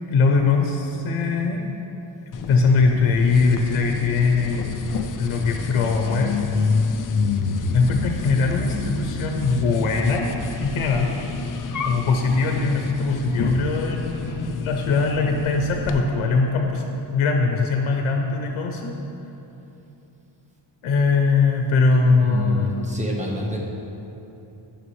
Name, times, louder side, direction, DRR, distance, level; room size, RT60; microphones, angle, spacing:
voice 1, 0.1-1.6 2.5-4.7 5.2-6.4 7.7-10.3 10.6-11.1 11.9-18.9 20.8-22.7, left 4 dB, 85° left, 2 dB, 0.8 m, -21 dB
sound 1, 2.3-16.0, left 4 dB, 45° left, 0.5 m, -28 dB
voice 2, 22.0-23.6, equal, 15° right, -2 dB, 1.2 m, -28 dB
11.0 x 6.3 x 3.2 m, 2.9 s
wide cardioid pair, 125°, 48 cm